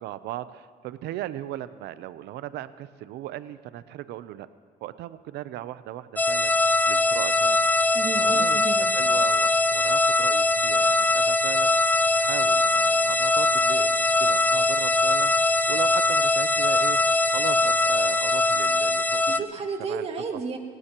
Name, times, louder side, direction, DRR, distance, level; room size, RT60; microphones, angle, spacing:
voice 1, 0.0-4.5 4.8-6.5 6.9-7.7 8.2-11.7 12.1-15.3 15.7-17.0 17.3-19.2 19.9-20.1 20.3-20.4, right 13 dB, 80° right, 14 dB, 0.7 m, -37 dB
sound 1, 6.2-19.4, left 2 dB, 10° left, 0.5 m, -22 dB
voice 2, 7.9-8.9 19.2-20.6, right 5 dB, 35° right, 3 dB, 2.1 m, -32 dB
28.0 x 16.5 x 3.0 m, 2.1 s
cardioid pair, 110°, 17 cm